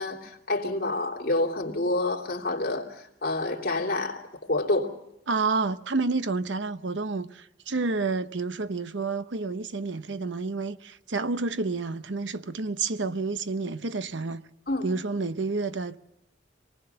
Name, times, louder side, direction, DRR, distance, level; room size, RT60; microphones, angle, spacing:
voice 1, 0.0-4.2 4.5-4.9 14.7-14.9, left 2 dB, 55° left, 3.0 m, -28 dB
voice 2, 5.3-14.4 14.8-16.0, right 3 dB, 75° right, 0.9 m, -29 dB
26.5 x 19.5 x 6.8 m
head